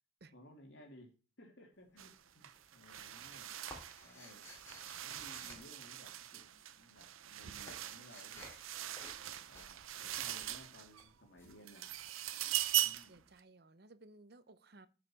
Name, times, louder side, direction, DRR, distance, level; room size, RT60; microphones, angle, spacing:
voice 1, 0.3-3.6 4.0-4.5 5.0-6.5 6.7-8.5 9.5-11.9 12.8-13.3, left 1 dB, 65° left, 2.8 m, -59 dB
sound 1, 1.7-2.3 2.5-6.6 6.9-12.5, left 1 dB, 10° left, 3.2 m, -57 dB
sound 2, 2.0-2.2 2.4-11.1 11.5-13.2, right 12 dB, 85° right, 0.7 m, -41 dB
voice 2, 13.1-14.9, right 2 dB, 50° right, 0.8 m, -59 dB
13.0 x 6.3 x 4.5 m
head